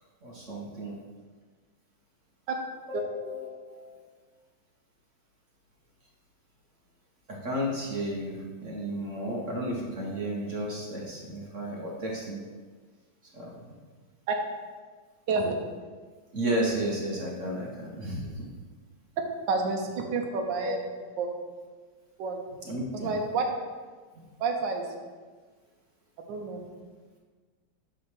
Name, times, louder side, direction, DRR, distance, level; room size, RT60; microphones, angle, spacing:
voice 1, 0.2-1.0 2.9-4.1 7.3-12.4 13.3-13.6 16.3-18.4 22.6-23.1 24.1-24.3, right 1 dB, 45° right, -3 dB, 1.1 m, -33 dB
voice 2, 19.5-20.8 21.2-21.3 22.2-22.4 22.9-23.4 24.4-24.9 26.3-26.6, right 4 dB, 65° right, 2 dB, 1.5 m, -29 dB
8.4 x 3.3 x 6.0 m, 1.4 s
omnidirectional pair, 2.3 m